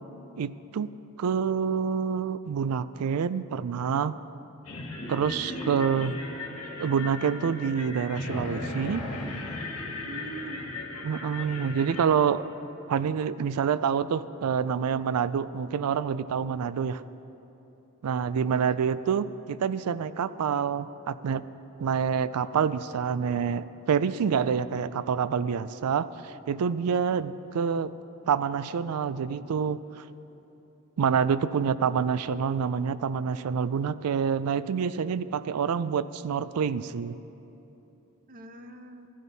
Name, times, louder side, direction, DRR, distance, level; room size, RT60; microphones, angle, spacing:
voice 1, 0.4-0.9 1.2-4.1 5.1-6.1 6.8-9.0 11.0-12.4 12.9-17.0 18.0-21.4 21.8-27.9 28.3-30.0 31.0-37.2, right 7 dB, 80° right, 15 dB, 0.4 m, -27 dB
sound 1, 4.6-12.1, left 2 dB, 75° left, 1.6 m, -36 dB
voice 2, 5.2-6.1 10.0-10.8 18.5-18.7 38.3-39.1, right 2 dB, 40° right, 7 dB, 0.7 m, -43 dB
13.5 x 11.5 x 4.1 m, 3.0 s
head